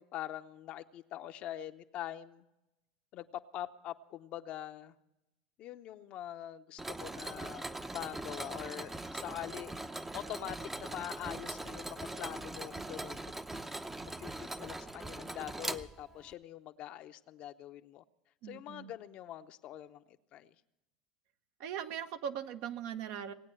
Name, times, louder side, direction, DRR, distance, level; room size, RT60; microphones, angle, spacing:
voice 1, 0.0-2.4 3.1-4.9 5.6-9.7 10.1-13.2 14.0-18.0 18.4-20.0 20.3-20.5, left 12 dB, 50° left, 9 dB, 0.7 m, -44 dB
Mechanisms, 6.8-16.3, right 2 dB, 10° right, 0.7 m, -41 dB
voice 2, 18.4-18.9 21.6-23.3, right 9 dB, 65° right, 8 dB, 0.9 m, -40 dB
18.5 x 8.8 x 7.7 m, 0.92 s
hypercardioid pair, 95°, 2 cm